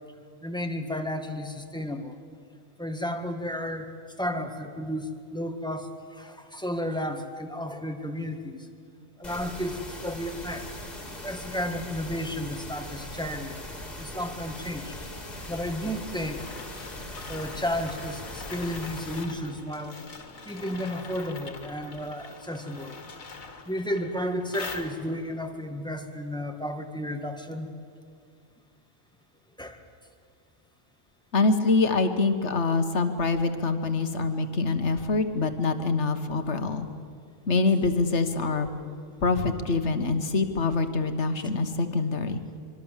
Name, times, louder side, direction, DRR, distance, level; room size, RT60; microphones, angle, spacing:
voice 1, 0.4-2.2 2.8-8.7 9.2-10.7 11.2-13.5 14.0-15.0 15.5-16.4 17.3-20.0 20.4-23.0 23.6-27.7 29.6-29.8, equal, 5° left, 4 dB, 1.6 m, -33 dB
sound 1, 9.2-19.2, left 1 dB, 30° left, 2.8 m, -40 dB
sound 2, 14.4-25.4, left 4 dB, 85° left, 2.2 m, -44 dB
voice 2, 31.3-36.9 37.5-38.7 39.2-42.4, left 3 dB, 60° left, 8 dB, 1.7 m, -25 dB
25.0 x 24.0 x 7.4 m, 2.3 s
omnidirectional pair, 1.4 m